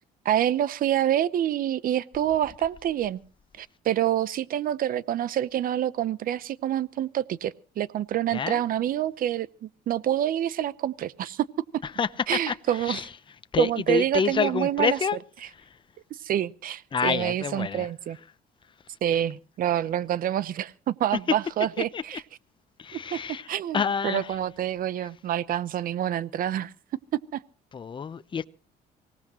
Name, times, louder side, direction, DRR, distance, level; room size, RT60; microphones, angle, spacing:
voice 1, 0.2-3.2 3.6-11.5 12.3-13.0 13.6-15.0 16.2-18.2 19.0-22.2 22.9-23.2 23.5-26.7 27.3-27.4, right 11 dB, 55° right, 0.8 m, -27 dB
voice 2, 8.3-8.6 11.8-13.1 13.5-15.2 15.4-15.8 16.9-17.9 21.8-22.0 22.8-23.5 23.7-24.4 25.0-25.1 27.7-28.4, left 6 dB, 30° left, 0.8 m, -28 dB
24.5 x 18.0 x 3.0 m
cardioid pair, 110°, 17 cm